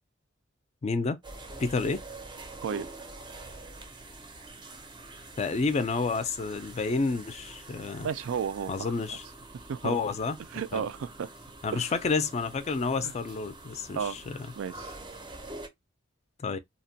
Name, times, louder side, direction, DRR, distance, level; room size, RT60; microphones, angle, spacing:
voice 1, 0.8-1.2 1.6-2.0 5.4-8.1 8.7-9.2 9.8-10.4 10.7-10.9 11.6-14.5 16.4-16.6, left 4 dB, 35° left, 0.4 m, -29 dB
sound 1, 1.2-15.7, right 2 dB, 25° right, 0.5 m, -46 dB
voice 2, 8.0-8.9 9.7-10.0 10.5-11.3 11.7-11.9 13.0-13.1 13.9-14.2 14.6-14.9, right 7 dB, 80° right, 0.3 m, -33 dB
2.8 x 2.1 x 2.6 m
head